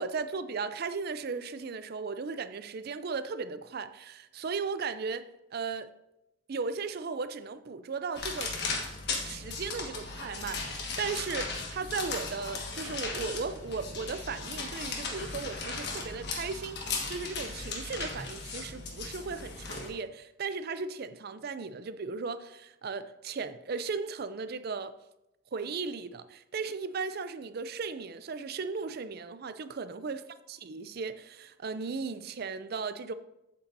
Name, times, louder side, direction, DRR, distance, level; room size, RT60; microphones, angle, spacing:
voice 1, 0.0-5.3 5.5-5.9 6.5-8.5 9.2-16.8 17.1-24.9 25.5-30.2 30.5-33.1, right 4 dB, 50° right, 0.4 m, -36 dB
sound 1, 8.1-19.9, left 4 dB, 55° left, 1.4 m, -37 dB
8.5 x 8.2 x 2.7 m
head